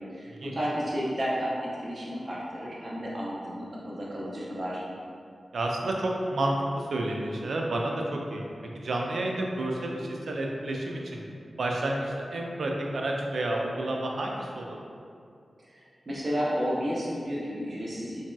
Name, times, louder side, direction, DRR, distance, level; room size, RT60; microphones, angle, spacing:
voice 1, 0.1-4.8 15.7-18.2, equal, 55° right, -6 dB, 0.7 m, -32 dB
voice 2, 5.5-8.5 8.8-11.2 11.6-14.8, right 1 dB, 80° right, 0 dB, 0.3 m, -30 dB
3.0 x 2.6 x 2.2 m, 2.4 s
cardioid pair, 40°, 0 cm